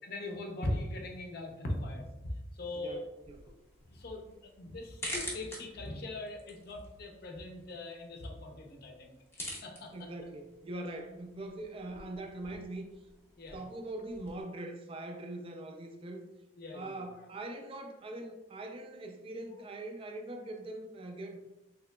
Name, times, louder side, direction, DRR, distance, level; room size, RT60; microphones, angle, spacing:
voice 1, 0.0-2.1 2.5-3.1 3.9-4.2 4.6-10.1 13.4-13.6 16.6-17.3, left 1 dB, 50° left, 2 dB, 0.6 m, -40 dB
voice 2, 2.7-3.4 9.9-12.9 13.5-16.3 16.7-21.4, right 2 dB, 30° right, 5 dB, 0.3 m, -42 dB
sound 1, 3.2-14.4, left 1 dB, 10° left, 0.6 m, -47 dB
3.7 x 2.9 x 2.2 m, 1.0 s
head